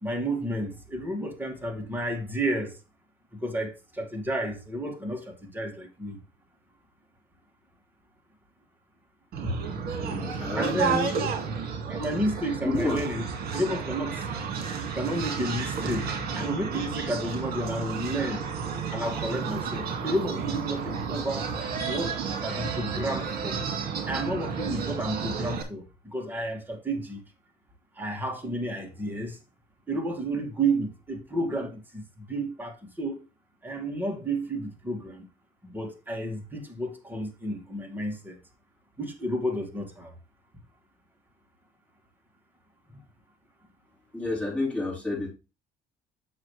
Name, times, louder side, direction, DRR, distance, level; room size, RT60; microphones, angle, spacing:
voice 1, 0.0-2.8 3.4-6.2 9.4-9.7 10.1-10.2 10.5-11.2 11.8-13.2 13.5-14.2 14.9-18.4 18.9-21.5 21.8-23.6 24.1-25.8 26.1-27.2 28.0-29.4 29.9-33.2 33.6-35.2 35.6-38.4 39.0-40.1, right 1 dB, 10° right, 2.0 m, -31 dB
sound 1, 9.3-25.6, right 6 dB, 65° right, 2.0 m, -32 dB
voice 2, 10.0-11.0 12.6-13.0 44.1-45.3, left 2 dB, 5° left, 3.9 m, -30 dB
7.5 x 6.3 x 3.2 m
cardioid pair, 110°, 17 cm